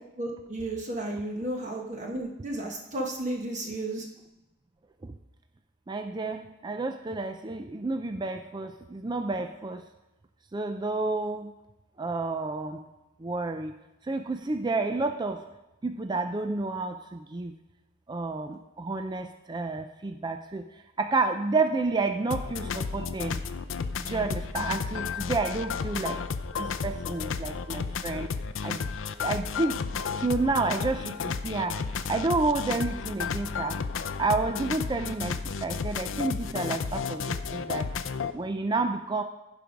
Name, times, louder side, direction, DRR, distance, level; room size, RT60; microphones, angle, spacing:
voice 1, 0.2-4.1, right 1 dB, 35° right, 0 dB, 1.1 m, -33 dB
voice 2, 5.9-9.8 10.5-11.5 12.0-12.8 13.2-13.7 14.1-15.4 15.8-17.5 18.1-20.6 21.0-23.4 24.1-26.2 26.6-28.3 28.6-28.8 29.2-31.1 31.4-31.7 32.1-33.8 34.2-35.3 35.6-37.9 38.3-39.2, right 3 dB, 20° right, 7 dB, 0.4 m, -30 dB
sound 1, 22.3-38.3, left 5 dB, 65° left, 0.5 m, -32 dB
15.0 x 5.2 x 5.1 m, 0.97 s
head